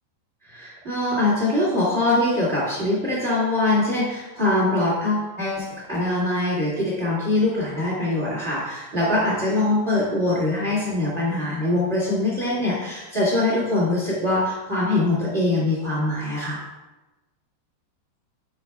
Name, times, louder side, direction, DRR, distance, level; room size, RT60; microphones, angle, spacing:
voice 1, 0.4-16.6, left 2 dB, 60° right, -7 dB, 0.7 m, -23 dB
8.2 x 6.9 x 2.3 m, 1.1 s
omnidirectional pair, 5.2 m